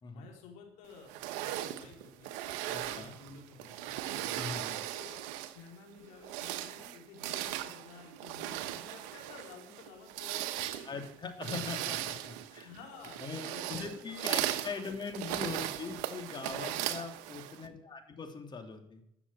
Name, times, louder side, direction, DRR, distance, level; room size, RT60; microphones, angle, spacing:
voice 1, 0.1-2.3 2.8-4.4 4.9-5.2 5.5-11.1 12.6-15.0 16.6-17.1, left 5 dB, 80° left, 1 dB, 4.3 m, -53 dB
sound 1, 1.1-5.7 6.1-17.7, right 13 dB, 80° right, 1.0 m, -38 dB
voice 2, 2.7-3.2 4.3-4.8 10.9-12.7 13.2-19.0, left 5 dB, 40° left, 5 dB, 3.0 m, -41 dB
13.5 x 7.1 x 8.8 m, 0.79 s
supercardioid pair, 75°, 12 cm